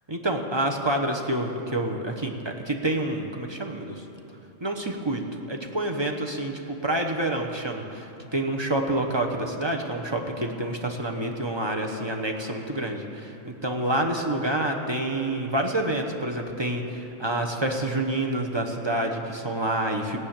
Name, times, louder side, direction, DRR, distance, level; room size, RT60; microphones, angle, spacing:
voice 1, 0.1-4.0 4.6-20.2, right 1 dB, 20° right, 2 dB, 0.9 m, -28 dB
17.0 x 6.4 x 8.8 m, 2.9 s
omnidirectional pair, 1.4 m